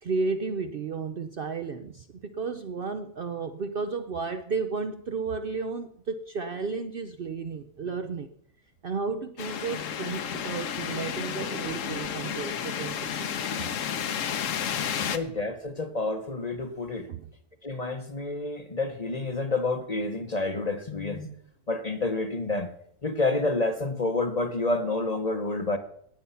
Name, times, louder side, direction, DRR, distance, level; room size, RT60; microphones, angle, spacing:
voice 1, 0.0-8.3 8.8-13.5 17.1-17.3, right 4 dB, 55° right, 9 dB, 0.7 m, -33 dB
sound 1, 9.4-15.2, left 8 dB, 70° left, 1.2 m, -32 dB
voice 2, 15.1-17.1 17.6-21.3 21.7-22.7 23.0-25.8, left 2 dB, 35° left, 8 dB, 0.9 m, -29 dB
18.0 x 7.0 x 5.6 m, 0.68 s
omnidirectional pair, 1.4 m